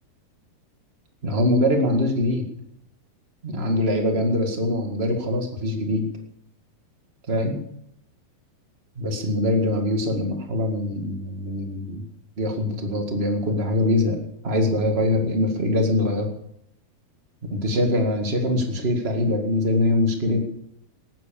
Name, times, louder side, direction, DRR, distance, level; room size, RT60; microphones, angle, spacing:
voice 1, 1.2-2.4 3.4-6.1 7.3-7.6 8.9-12.0 12.4-14.2 14.4-16.3 17.5-20.6, left 1 dB, 70° right, 3 dB, 0.6 m, -23 dB
18.5 x 9.7 x 7.0 m, 0.76 s
omnidirectional pair, 4.8 m